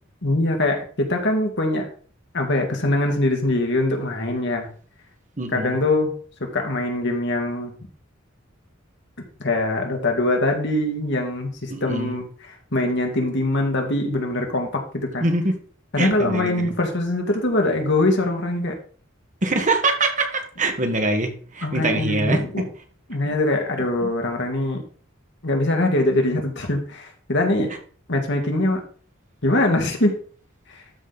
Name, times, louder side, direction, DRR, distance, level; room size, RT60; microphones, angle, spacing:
voice 1, 0.2-1.9 2.3-4.7 5.5-6.1 6.4-7.7 9.4-12.3 12.7-15.3 15.9-18.7 21.6-22.6 23.1-24.8 25.4-27.7 28.1-28.8 29.4-30.1 30.7-30.8, left 2 dB, 60° left, 2 dB, 2.1 m, -22 dB
voice 2, 5.4-5.8 11.7-12.2 15.2-15.6 16.0-16.7 19.4-22.7 23.2-23.3 24.0-24.1, right 2 dB, 40° right, 5 dB, 1.5 m, -24 dB
12.5 x 5.2 x 4.0 m, 0.43 s
head